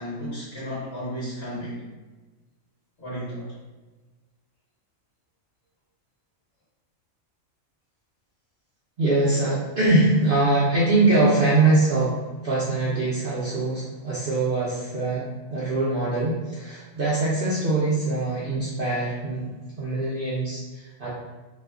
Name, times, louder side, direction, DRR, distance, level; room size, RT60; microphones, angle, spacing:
voice 1, 0.0-1.8 3.0-3.5, equal, 50° left, -8 dB, 1.4 m, -33 dB
voice 2, 9.0-12.2 12.4-19.5 19.8-21.1, right 2 dB, 60° right, -8 dB, 0.6 m, -23 dB
2.9 x 2.1 x 2.3 m, 1.2 s
omnidirectional pair, 1.4 m